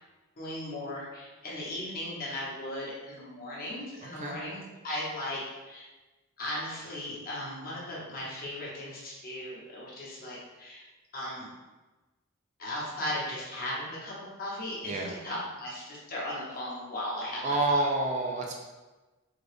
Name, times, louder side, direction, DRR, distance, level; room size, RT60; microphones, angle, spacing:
voice 1, 0.4-5.8 6.4-10.8 11.1-11.5 12.6-17.6, left 1 dB, 45° left, -6 dB, 1.0 m, -37 dB
voice 2, 4.0-4.4 14.8-15.2 17.4-18.6, right 2 dB, 35° right, 0 dB, 0.4 m, -28 dB
3.8 x 2.3 x 3.3 m, 1.2 s
head